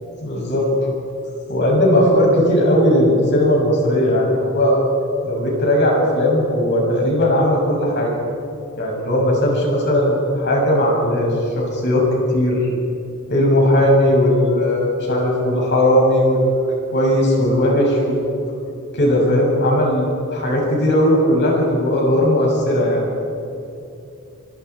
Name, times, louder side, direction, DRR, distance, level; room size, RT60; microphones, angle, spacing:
voice 1, 0.2-0.6 1.5-4.8 5.2-8.1 8.8-12.1 12.3-12.6 13.3-16.4 16.9-18.2 18.9-23.0, left 1 dB, 50° left, -2 dB, 7.3 m, -17 dB
26.0 x 25.5 x 4.9 m, 2.7 s
head